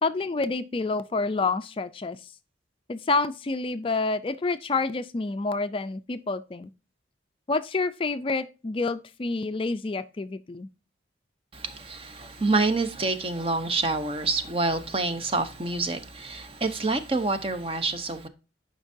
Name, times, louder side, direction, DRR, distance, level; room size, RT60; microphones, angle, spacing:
voice 1, 0.0-2.3 2.9-6.7 7.5-10.7, left 3 dB, 30° left, 0.4 m, -28 dB
voice 2, 11.5-18.3, right 3 dB, 30° right, 0.7 m, -27 dB
11.0 x 5.2 x 2.6 m
head